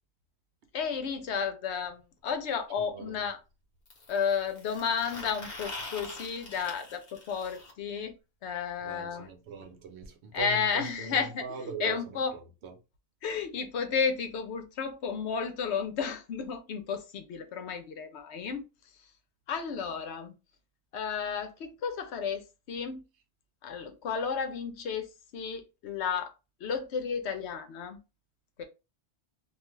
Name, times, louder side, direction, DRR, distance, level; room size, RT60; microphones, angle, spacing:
voice 1, 0.7-3.4 4.1-8.1 8.4-9.3 10.3-12.3 13.2-18.6 19.5-20.3 20.9-23.0 23.6-25.1 25.3-26.3 26.6-28.0 28.6-28.7, left 6 dB, 75° left, 0.9 m, -32 dB
sound 1, 1.8-1.9 3.9-7.7 9.6-9.7 10.0-10.1 10.4-10.5 11.4-11.5, left 2 dB, 45° left, 0.9 m, -44 dB
voice 2, 2.8-3.2 8.8-12.8, right 5 dB, 75° right, 0.9 m, -41 dB
2.4 x 2.3 x 3.0 m
omnidirectional pair, 1.2 m